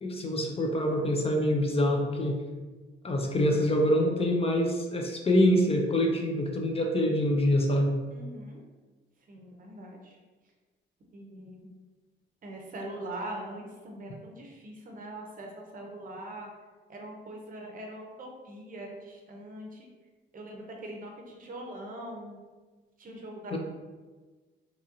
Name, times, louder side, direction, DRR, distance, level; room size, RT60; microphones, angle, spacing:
voice 1, 0.0-2.4 3.0-8.0 23.5-23.6, left 1 dB, 30° left, 2 dB, 0.4 m, -25 dB
voice 2, 8.1-8.6 9.3-10.2 11.1-11.7 12.4-16.5 16.9-19.9 20.3-22.4 23.0-23.6, right 1 dB, 45° right, 1 dB, 0.6 m, -42 dB
2.9 x 2.6 x 2.5 m, 1.3 s
cardioid pair, 90°, 20 cm